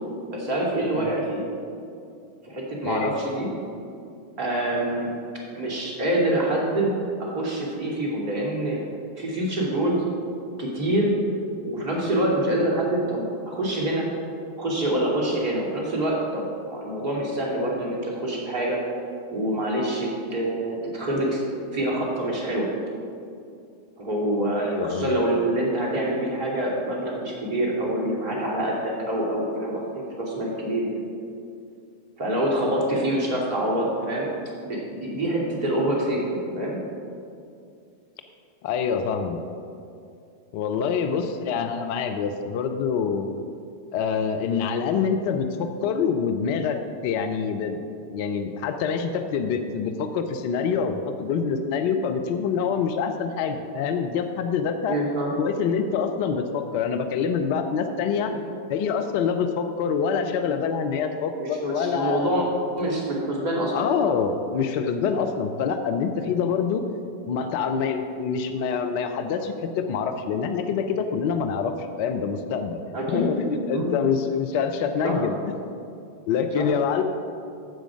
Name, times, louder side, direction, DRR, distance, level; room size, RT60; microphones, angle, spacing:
voice 1, 0.3-1.4 2.4-3.5 4.4-5.1 5.5-8.8 9.1-10.0 10.6-11.2 11.6-14.1 14.6-18.8 19.3-21.4 21.7-22.7 24.0-31.0 32.2-34.3 34.6-36.8 54.9-55.3 61.4-62.4 62.8-63.9 72.9-73.3 73.7-73.9 75.0-75.2 76.5-76.7, right 1 dB, 45° right, -2 dB, 2.5 m, -26 dB
voice 2, 24.6-25.2 38.6-39.4 40.5-43.3 43.9-46.8 47.0-55.0 55.4-58.3 58.7-62.5 63.7-66.8 67.3-75.6 76.3-77.0, left 6 dB, 45° left, 7 dB, 0.6 m, -26 dB
14.0 x 5.1 x 5.0 m, 2.5 s
figure-of-eight pair, 90°, 0 cm